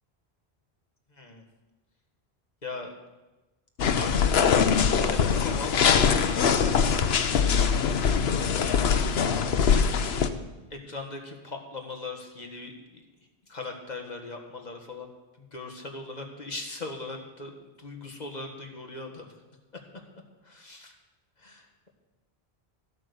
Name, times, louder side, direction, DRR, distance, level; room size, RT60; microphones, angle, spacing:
voice 1, 1.1-1.4 2.6-2.9 4.0-4.3 5.1-6.2 6.6-7.0 7.4-8.0 8.3-9.1 10.1-10.4 10.7-13.0 13.5-15.1 15.4-19.3 20.5-21.0 21.4-21.9, left 3 dB, 40° left, 2 dB, 1.8 m, -40 dB
sound 1, 3.8-10.3, left 6 dB, 70° left, 1.0 m, -23 dB
14.0 x 8.7 x 6.9 m, 1.1 s
omnidirectional pair, 1.1 m